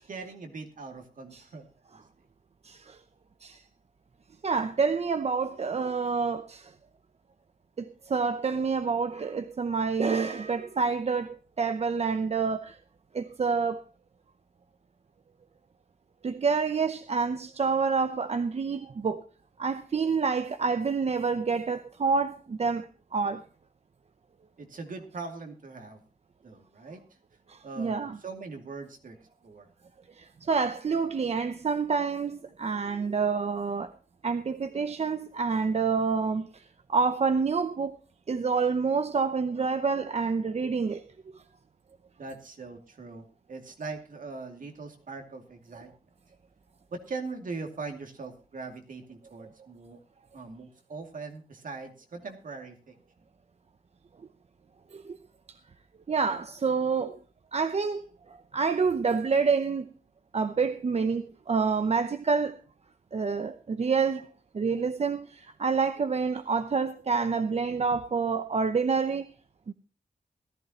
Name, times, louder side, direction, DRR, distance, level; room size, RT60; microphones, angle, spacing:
voice 1, 0.0-1.7 1.9-2.0 24.6-26.0 26.4-27.0 27.6-29.2 29.4-29.7 42.2-45.9 46.9-50.0 50.3-53.0, right 4 dB, 65° right, 2.5 m, -41 dB
voice 2, 2.6-3.0 3.4-3.6 4.4-6.7 7.8-12.8 13.1-13.8 16.2-19.2 19.6-23.5 27.5-28.2 30.1-33.9 34.2-38.0 38.3-41.0 41.3-41.4 49.4-49.5 54.9-55.2 55.5-55.6 56.1-57.2 57.5-58.0 58.3-59.9 60.3-62.6 63.1-64.3 64.5-69.3 69.7-69.8, right 5 dB, 45° right, 0.7 m, -28 dB
18.0 x 13.5 x 2.9 m
wide cardioid pair, 160°, 15 cm